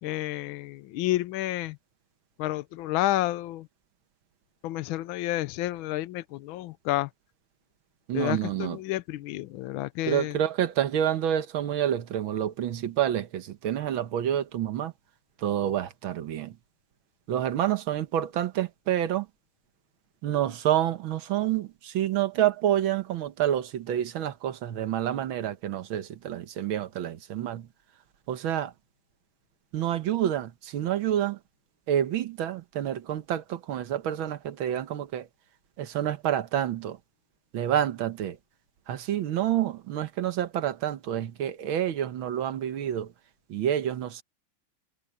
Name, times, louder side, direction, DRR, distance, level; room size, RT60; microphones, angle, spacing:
voice 1, 0.0-1.8 2.4-3.7 4.6-7.1 8.1-10.4, left 15 dB, 80° left, 1.4 m, -30 dB
voice 2, 8.1-8.8 10.1-14.9 15.4-16.5 17.3-19.3 20.2-27.7 28.3-28.7 29.7-31.4 31.9-35.3 35.8-37.0 37.5-38.4 38.9-43.1 43.5-44.2, right 11 dB, 80° right, 1.9 m, -28 dB
omnidirectional pair, 2.2 m